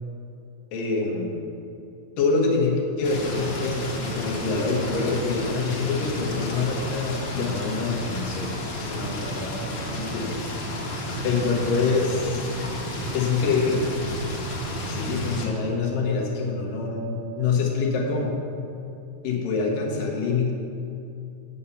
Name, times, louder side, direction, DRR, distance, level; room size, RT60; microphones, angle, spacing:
voice 1, 0.7-1.4 2.2-9.7 9.9-10.7 11.2-12.4 13.1-13.9 14.9-18.4 19.2-20.5, left 4 dB, 85° left, 0 dB, 3.1 m, -26 dB
sound 1, 3.0-15.5, equal, 50° left, 2.0 m, -32 dB
8.5 x 8.5 x 7.1 m, 2.7 s
omnidirectional pair, 3.8 m